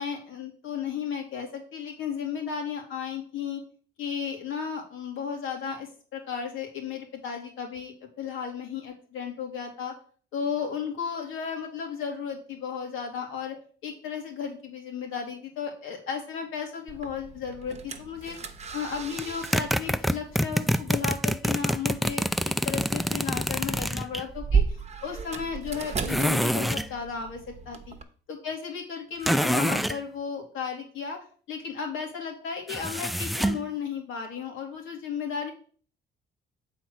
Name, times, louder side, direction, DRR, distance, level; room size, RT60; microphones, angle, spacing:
voice 1, 0.0-3.6 4.0-9.9 10.3-13.6 13.8-18.4 18.7-22.2 22.6-27.9 28.3-31.2 31.5-35.5, left 6 dB, 85° left, 2 dB, 2.4 m, -34 dB
sound 1, 16.9-28.0, right 5 dB, 35° right, 1.0 m, -35 dB
sound 2, 19.2-24.2 26.1-26.9 29.2-30.0 32.7-33.7, equal, ahead, 0.3 m, -26 dB
7.7 x 4.2 x 6.1 m, 0.43 s
cardioid pair, 90°, 20 cm